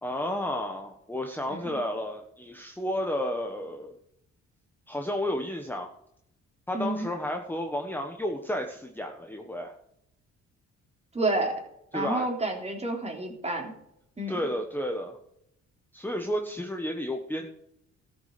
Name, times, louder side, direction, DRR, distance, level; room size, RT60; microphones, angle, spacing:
voice 1, 0.0-3.9 4.9-5.9 6.7-9.8 11.9-12.3 14.3-15.2 15.9-17.5, left 1 dB, 5° left, 3 dB, 1.2 m, -32 dB
voice 2, 6.7-7.1 11.1-11.6 11.9-13.7 14.2-14.4, right 2 dB, 20° right, 2 dB, 3.4 m, -29 dB
13.0 x 6.7 x 6.7 m, 0.77 s
cardioid pair, 90°, 30 cm